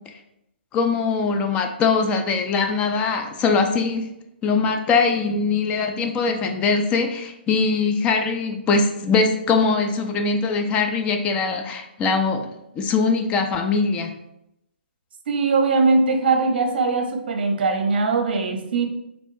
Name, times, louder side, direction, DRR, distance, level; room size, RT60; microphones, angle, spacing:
voice 1, 0.7-4.1 4.4-14.1, left 4 dB, 20° left, 4 dB, 0.3 m, -22 dB
voice 2, 15.3-18.9, right 3 dB, 65° right, 5 dB, 0.7 m, -21 dB
3.5 x 2.9 x 2.6 m, 0.83 s
hypercardioid pair, 140°, 6 cm